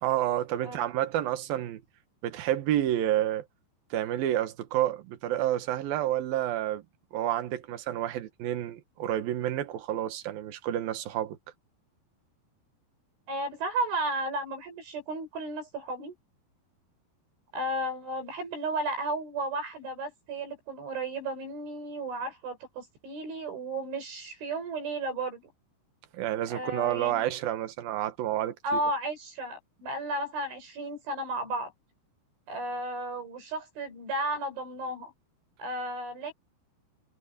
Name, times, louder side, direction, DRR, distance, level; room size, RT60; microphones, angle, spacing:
voice 1, 0.0-1.8 2.2-3.4 3.9-6.8 7.1-11.4 26.1-28.6, right 12 dB, 60° right, 2.8 m, -29 dB
voice 2, 13.3-16.1 17.5-25.5 26.5-27.3 28.6-31.7 32.5-35.1 35.6-36.3, right 2 dB, 80° right, 9.3 m, -33 dB
omnidirectional pair, 5.4 m